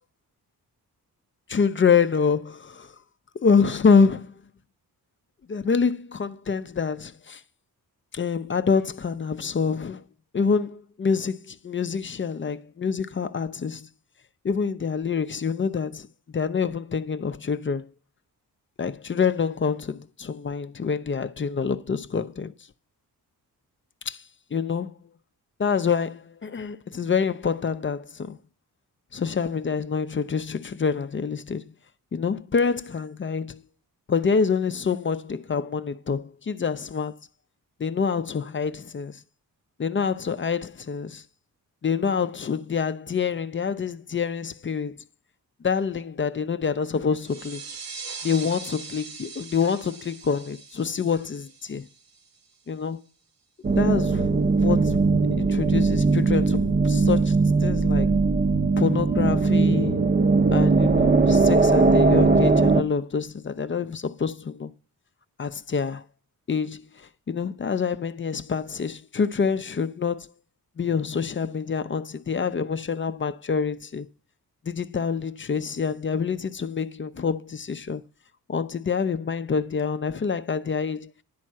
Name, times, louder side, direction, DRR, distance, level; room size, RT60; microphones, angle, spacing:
voice 1, 1.5-2.9 3.3-4.3 5.5-7.4 8.1-10.0 10.3-13.9 14.4-16.1 16.3-17.9 18.8-22.5 24.1-24.2 24.5-24.9 25.6-28.4 29.1-31.7 32.1-33.6 34.1-37.2 37.8-39.2 39.8-41.2 41.8-44.9 45.6-47.6 48.2-51.9 52.7-53.0 53.8-54.3 54.6-55.0 55.3-58.1 58.8-60.1 60.5-64.7 65.4-66.0 66.5-70.3 70.8-74.1 74.7-78.0 78.5-81.1, left 6 dB, 30° left, 0.5 m, -26 dB
sound 1, 47.2-52.5, right 5 dB, 65° right, 1.2 m, -41 dB
sound 2, 53.6-62.8, right 3 dB, 25° right, 0.7 m, -20 dB
10.5 x 4.4 x 7.4 m
wide cardioid pair, 110°, 38 cm